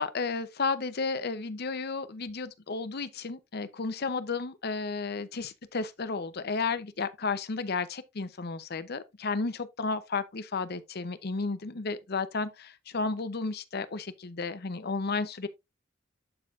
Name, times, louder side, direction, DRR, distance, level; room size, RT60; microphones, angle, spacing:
voice 1, 0.0-15.5, left 4 dB, 50° left, 0.7 m, -33 dB
12.0 x 4.5 x 2.5 m
head